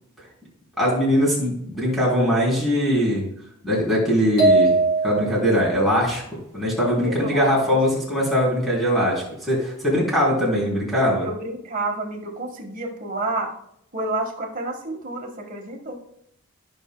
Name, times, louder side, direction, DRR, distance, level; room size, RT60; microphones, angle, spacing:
voice 1, 0.8-3.3 3.6-4.8 5.0-6.2 6.5-11.3, equal, ahead, -6 dB, 3.2 m, -21 dB
sound 1, 4.4-5.6, right 2 dB, 45° left, 3.1 m, -19 dB
voice 2, 7.0-7.8 11.2-13.5 13.9-16.0, right 2 dB, 35° right, 1 dB, 1.4 m, -30 dB
14.5 x 5.6 x 2.2 m, 0.72 s
head